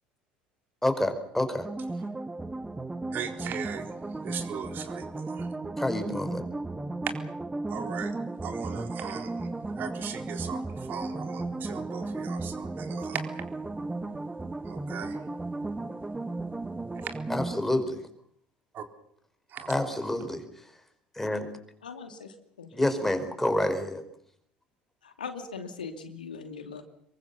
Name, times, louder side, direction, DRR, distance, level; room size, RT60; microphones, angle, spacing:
voice 1, 0.8-1.7 5.8-6.4 17.3-18.0 19.7-20.7 21.1-21.5 22.7-24.0, left 1 dB, 5° left, 8 dB, 4.8 m, -28 dB
sound 1, 1.6-17.6, right 2 dB, 10° right, 1.2 m, -35 dB
voice 2, 3.1-5.5 7.7-8.2 8.4-13.3 14.6-15.2 16.9-17.2 18.7-18.9 19.5-19.7, right 7 dB, 45° right, 7 dB, 4.0 m, -39 dB
voice 3, 21.8-23.0 25.0-26.8, left 5 dB, 80° left, 7 dB, 2.6 m, -41 dB
26.5 x 23.0 x 7.1 m, 0.66 s
figure-of-eight pair, 65°, 5 cm